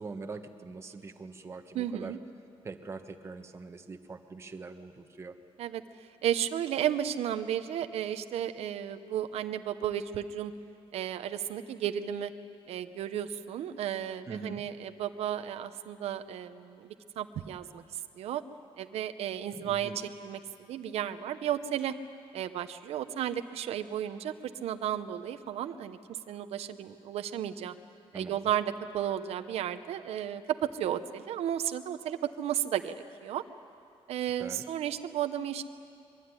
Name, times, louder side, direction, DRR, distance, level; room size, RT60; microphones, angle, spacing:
voice 1, 0.0-2.1 2.6-5.4 14.3-14.6 19.5-20.0 28.1-28.4 34.4-34.6, right 4 dB, 25° right, 5 dB, 1.4 m, -43 dB
voice 2, 1.7-2.2 5.6-5.8 6.2-10.5 10.9-12.3 12.7-18.4 18.8-20.4 20.7-21.9 22.3-24.3 24.6-27.7 28.1-32.9 33.2-33.4 34.1-35.6, right 10 dB, 90° right, 9 dB, 0.9 m, -33 dB
25.5 x 22.5 x 9.8 m, 2.5 s
cardioid pair, 150°, 10 cm